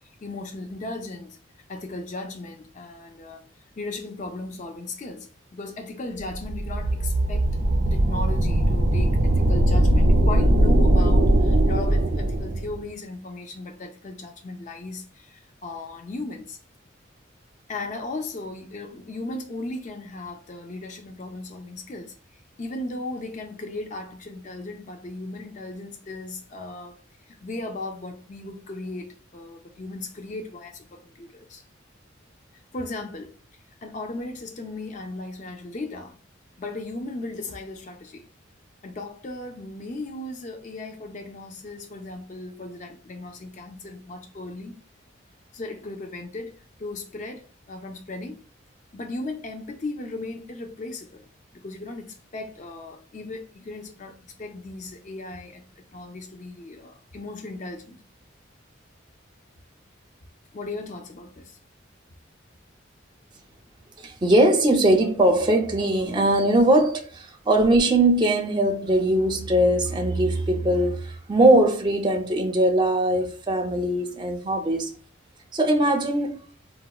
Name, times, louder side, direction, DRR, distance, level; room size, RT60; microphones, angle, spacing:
voice 1, 0.2-1.4 1.7-3.4 3.8-7.6 7.8-16.6 17.7-22.1 22.6-27.0 27.2-31.6 32.7-33.3 33.8-36.2 36.6-38.3 38.8-44.7 45.5-48.4 48.9-51.3 51.5-58.0 60.5-61.6, left 2 dB, 40° left, 0.4 m, -36 dB
sound 1, 6.3-12.8, right 1 dB, 90° right, 0.5 m, -20 dB
voice 2, 64.0-74.9 75.5-76.4, right 1 dB, 25° right, 0.4 m, -21 dB
4.0 x 2.1 x 2.3 m
head